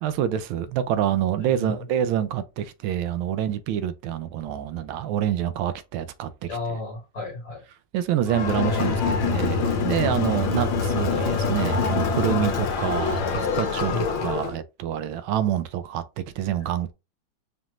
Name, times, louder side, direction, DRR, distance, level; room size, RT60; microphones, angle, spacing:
voice 1, 0.0-6.5 7.9-16.9, right 10 dB, 85° right, 1.4 m, -27 dB
voice 2, 1.4-1.9 6.5-7.6 13.9-14.3, left 2 dB, 50° left, 2.3 m, -33 dB
Crowd, 8.2-14.6, left 5 dB, 85° left, 1.6 m, -25 dB
5.3 x 2.9 x 2.4 m
omnidirectional pair, 2.2 m